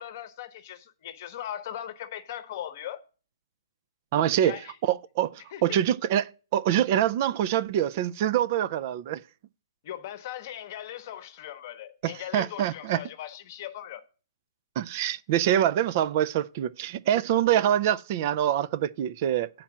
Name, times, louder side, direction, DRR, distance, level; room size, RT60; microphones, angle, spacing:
voice 1, 0.0-3.0 4.4-4.7 5.5-5.8 9.8-14.0, left 11 dB, 35° left, 0.9 m, -39 dB
voice 2, 4.1-9.2 12.0-13.0 14.8-19.5, right 11 dB, 30° right, 0.3 m, -25 dB
8.7 x 4.4 x 7.2 m
hypercardioid pair, 165°, 2 cm